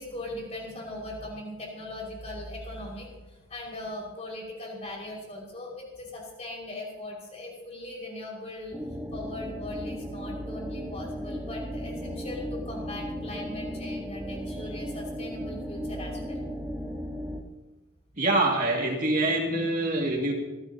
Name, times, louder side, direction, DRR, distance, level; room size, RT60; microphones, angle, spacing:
voice 1, 0.0-8.8 9.1-16.4, left 1 dB, 30° left, -2 dB, 5.5 m, -39 dB
sound 1, 8.7-17.4, equal, 10° right, 1.4 m, -36 dB
voice 2, 18.2-20.3, right 2 dB, 40° right, -1 dB, 2.2 m, -25 dB
26.5 x 16.0 x 2.9 m, 1.1 s
head